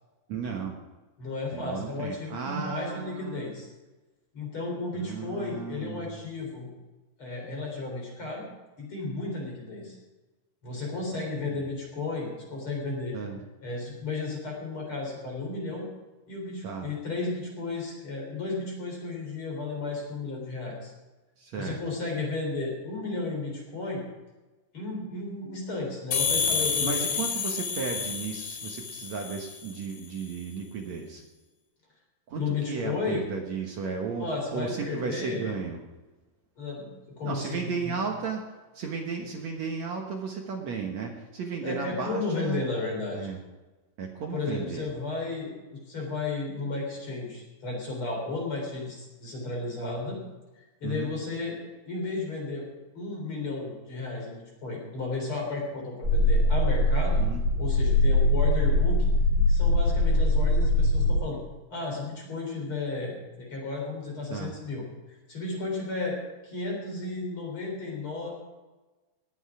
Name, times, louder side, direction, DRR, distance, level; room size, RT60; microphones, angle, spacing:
voice 1, 0.3-0.8 1.5-3.6 4.9-6.2 11.2-11.6 13.1-13.4 16.6-16.9 21.4-21.8 26.8-31.2 32.3-34.3 34.5-35.8 37.2-38.4 38.7-42.6 43.1-43.4 44.0-44.9 50.8-51.1 57.2-57.4 64.3-64.5, right 5 dB, 60° right, 1 dB, 2.0 m, -34 dB
voice 2, 1.2-3.7 4.3-6.7 7.2-8.5 8.8-10.0 10.6-13.2 13.6-15.9 16.3-20.9 21.6-24.0 24.7-27.2 32.3-33.2 34.2-35.6 36.6-36.9 37.2-38.0 41.6-43.3 44.3-50.2 50.6-51.6 51.9-52.7 52.9-57.2 57.6-59.0 59.5-61.4 61.7-68.3, left 3 dB, 35° left, -1 dB, 4.2 m, -33 dB
sound 1, 26.1-29.7, left 6 dB, 60° left, 2.8 m, -29 dB
sound 2, 56.0-61.2, left 1 dB, 25° right, 5.8 m, -22 dB
19.5 x 8.2 x 4.9 m, 1.2 s
omnidirectional pair, 4.6 m